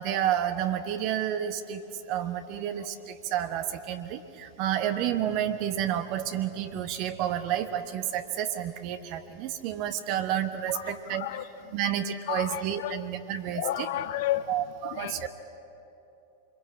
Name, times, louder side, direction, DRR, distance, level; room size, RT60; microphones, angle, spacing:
voice 1, 0.0-11.4 11.7-13.9 14.5-15.3, right 10 dB, 45° right, 1.1 m, -30 dB
voice 2, 10.7-11.5 12.3-13.0 13.5-14.5 14.9-15.3, left 13 dB, 55° left, 1.0 m, -32 dB
26.5 x 22.0 x 8.7 m
figure-of-eight pair, 90°, 0 cm